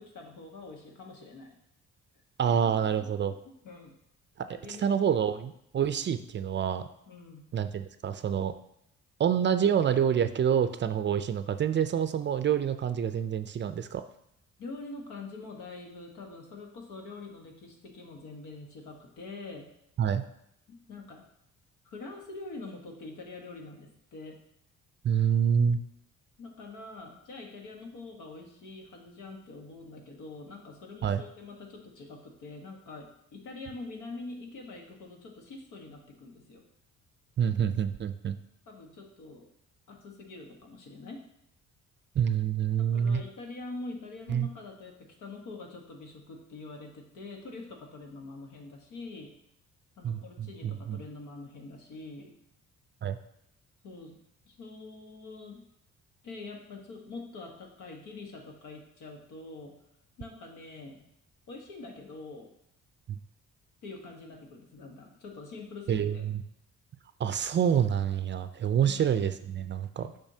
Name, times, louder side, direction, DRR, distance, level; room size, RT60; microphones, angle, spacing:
voice 1, 0.0-1.5 2.5-3.1 3.6-3.9 4.5-5.0 7.1-7.4 14.6-19.7 20.7-21.3 21.8-24.4 26.4-36.6 38.7-39.5 39.9-41.2 42.8-49.3 50.0-52.3 53.8-54.2 54.5-55.6 56.2-59.8 60.2-61.0 61.5-62.5 63.8-66.2 68.8-69.2, left 3 dB, 80° left, 2 dB, 1.3 m, -45 dB
voice 2, 2.4-3.3 4.7-6.8 7.5-8.5 9.2-14.0 20.0-20.2 25.0-25.8 31.0-31.2 37.4-38.4 42.2-43.2 44.3-44.5 50.0-51.0 53.0-53.2 63.1-63.2 65.9-66.4 67.2-70.1, right 8 dB, 40° right, 10 dB, 0.4 m, -27 dB
7.1 x 5.3 x 2.8 m, 0.75 s
cardioid pair, 90°, 30 cm